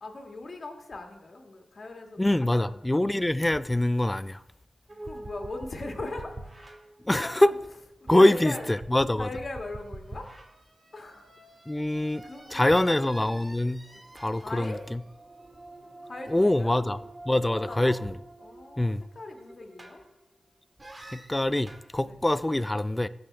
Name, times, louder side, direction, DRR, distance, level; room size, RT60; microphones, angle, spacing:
voice 1, 0.0-2.8 5.0-6.7 7.1-7.6 8.0-8.7 9.2-10.3 10.9-11.3 12.2-13.0 14.3-14.9 16.0-16.8 17.5-18.0 18.4-20.0 22.0-22.2, left 2 dB, 55° left, 1.7 m, -40 dB
voice 2, 2.2-4.4 7.1-7.5 8.1-9.3 11.7-13.8 14.2-15.0 16.3-17.0 17.3-18.1 18.8-19.0 21.1-23.1, left 1 dB, 15° left, 0.4 m, -24 dB
sound 1, 4.9-7.6 8.1-20.3 20.8-21.9, right 2 dB, 30° right, 1.8 m, -46 dB
14.5 x 5.5 x 3.4 m
cardioid pair, 45°, 0 cm